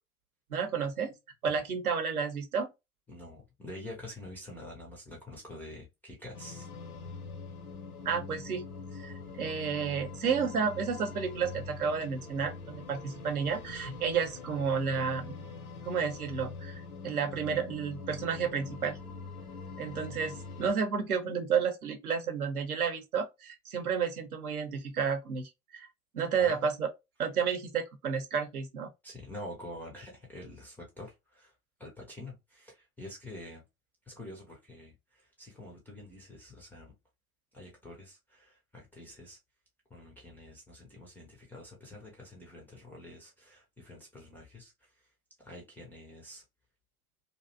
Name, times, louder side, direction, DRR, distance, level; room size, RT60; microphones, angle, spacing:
voice 1, 0.5-1.1 1.4-2.7 8.0-8.7 9.0-15.4 15.9-19.0 19.8-25.9 26.1-26.9 27.2-28.9, right 6 dB, 75° right, 0.8 m, -31 dB
voice 2, 3.1-6.7 26.4-26.7 29.0-31.5 31.8-33.6 34.1-36.9 37.5-39.4 39.9-44.7 45.4-46.4, left 1 dB, 5° left, 0.3 m, -47 dB
sound 1, 6.3-20.7, left 4 dB, 80° left, 0.6 m, -44 dB
2.6 x 2.0 x 2.5 m
figure-of-eight pair, 85°, 44 cm